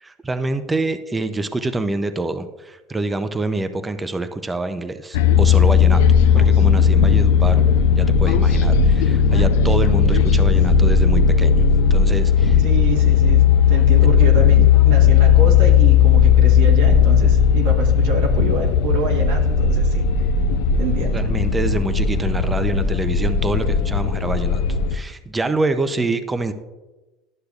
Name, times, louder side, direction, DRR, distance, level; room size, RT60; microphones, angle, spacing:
voice 1, 0.0-6.0 6.3-7.6 7.9-12.6 21.1-24.6 24.9-26.5, right 2 dB, 15° right, 9 dB, 0.5 m, -26 dB
sound 1, 5.1-25.0, left 7 dB, 85° left, 0.4 m, -15 dB
voice 2, 12.6-20.1 20.8-21.1 25.9-26.0, right 3 dB, 80° right, 1 dB, 1.1 m, -27 dB
11.5 x 6.5 x 2.3 m, 1.1 s
supercardioid pair, 125°, 0 cm